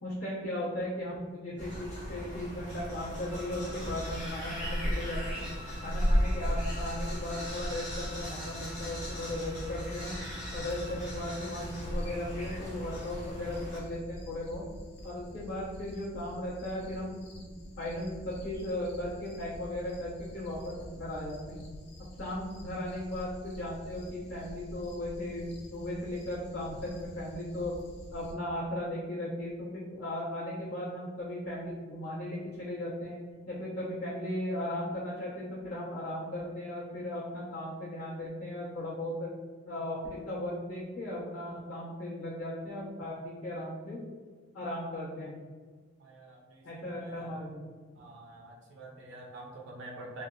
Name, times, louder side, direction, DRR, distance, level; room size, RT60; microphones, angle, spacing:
voice 1, 0.0-5.4 5.8-10.2 10.5-14.6 15.0-17.5 17.8-21.6 22.2-27.7 28.1-33.2 33.5-39.3 39.7-44.0 44.5-45.3 46.6-47.6, left 1 dB, 85° left, -11 dB, 1.0 m, -37 dB
sound 1, 1.6-13.8, equal, 35° left, 1.0 m, -35 dB
Bowed string instrument, 3.3-11.1, left 2 dB, ahead, 0.5 m, -51 dB
sound 2, 11.5-28.3, equal, 50° left, 0.4 m, -48 dB
voice 2, 46.0-47.3 48.0-50.2, right 2 dB, 55° right, -1 dB, 0.4 m, -47 dB
3.3 x 2.0 x 2.4 m, 1.5 s
head